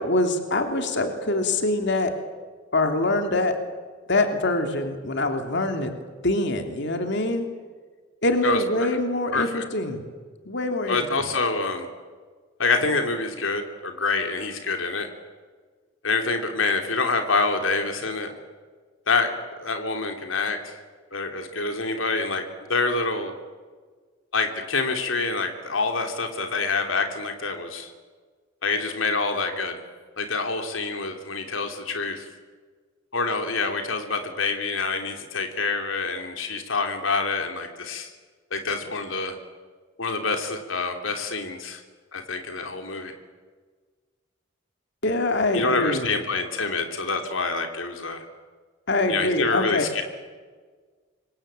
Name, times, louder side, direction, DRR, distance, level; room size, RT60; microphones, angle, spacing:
voice 1, 0.0-2.1 2.7-3.6 4.1-5.9 6.2-7.5 8.2-10.0 10.4-11.0 45.0-46.0 48.9-49.9, left 2 dB, 65° left, 5 dB, 3.1 m, -24 dB
voice 2, 8.4-8.9 9.3-9.6 10.9-11.9 12.6-15.1 16.0-18.3 19.1-20.8 21.1-22.4 22.7-23.4 24.3-27.9 28.6-29.8 30.2-32.3 33.1-38.1 38.5-39.4 40.0-41.8 42.1-43.1 45.5-48.2 49.1-50.0, left 3 dB, 90° left, 5 dB, 3.0 m, -26 dB
27.0 x 24.5 x 9.0 m, 1.5 s
head